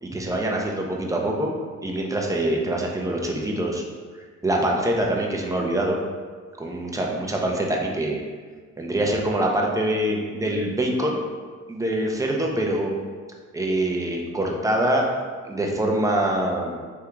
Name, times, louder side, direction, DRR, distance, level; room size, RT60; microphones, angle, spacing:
voice 1, 0.0-1.5 1.8-3.8 4.4-6.0 6.6-8.2 8.8-11.2 11.7-12.9 13.5-15.0 15.4-16.8, right 1 dB, 10° right, 0 dB, 0.7 m, -24 dB
3.6 x 2.7 x 4.6 m, 1.5 s
cardioid pair, 90°, 30 cm